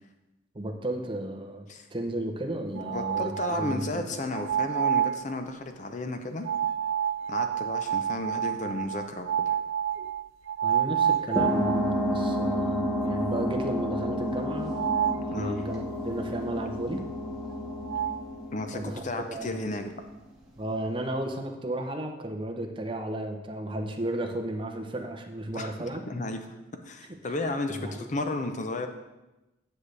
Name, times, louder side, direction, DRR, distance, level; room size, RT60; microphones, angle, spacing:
voice 1, 0.5-3.3 3.6-4.0 10.6-14.7 15.4-17.0 18.7-19.6 20.6-26.0 27.8-28.1, right 1 dB, 25° right, 3 dB, 0.7 m, -33 dB
voice 2, 2.7-6.5 7.3-9.6 15.1-15.6 18.5-20.0 25.5-26.4 26.8-28.9, left 2 dB, 40° left, 6 dB, 0.7 m, -33 dB
sound 1, 2.8-3.8 4.3-5.2 6.4-12.1 12.5-12.6 13.0-13.1 14.7-15.3 17.5-17.6 17.9-18.2, right 9 dB, 90° right, 0.3 m, -28 dB
sound 2, 11.4-19.5, equal, 5° right, 1.1 m, -30 dB
9.7 x 6.5 x 3.3 m, 1.0 s
head